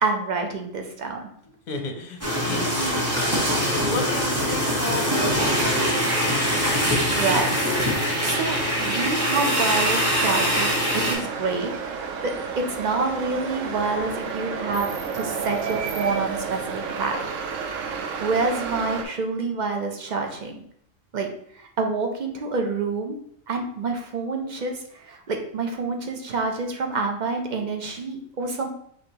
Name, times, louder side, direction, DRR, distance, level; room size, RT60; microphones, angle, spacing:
voice 1, 0.0-1.3 6.7-7.7 8.1-11.7 12.2-17.2 18.2-20.6 21.1-21.3 21.6-23.2 23.5-28.7, right 3 dB, 45° right, 3 dB, 0.6 m, -27 dB
voice 2, 1.7-3.4 3.7-6.1, left 3 dB, 40° left, 3 dB, 0.7 m, -33 dB
sound 1, 2.2-11.2, equal, 15° right, 1.1 m, -23 dB
sound 2, 3.3-19.0, right 5 dB, 85° right, 1.0 m, -33 dB
5.2 x 3.1 x 2.9 m, 0.67 s
omnidirectional pair, 1.3 m